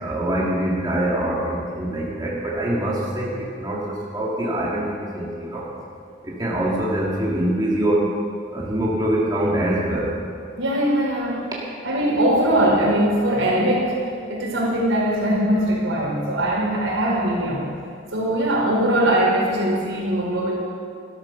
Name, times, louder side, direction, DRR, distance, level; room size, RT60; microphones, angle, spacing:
voice 1, 0.0-5.7 6.2-8.1 8.5-10.1, right 1 dB, 20° right, -5 dB, 2.1 m, -24 dB
voice 2, 10.6-11.4 11.8-14.0 14.3-17.6 18.1-20.5, right 1 dB, 90° right, -4 dB, 4.5 m, -21 dB
13.5 x 12.0 x 5.8 m, 2.3 s
head